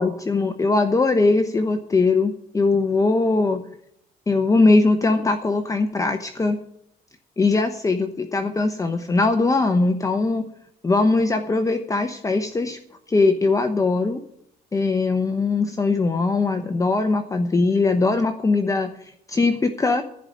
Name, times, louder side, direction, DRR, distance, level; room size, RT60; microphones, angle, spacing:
voice 1, 0.0-3.6 4.3-6.6 7.4-10.4 10.8-12.8 13.1-14.2 14.7-20.0, left 3 dB, 20° left, 7 dB, 0.9 m, -21 dB
15.0 x 4.9 x 9.3 m, 0.73 s
cardioid pair, 110°, 17 cm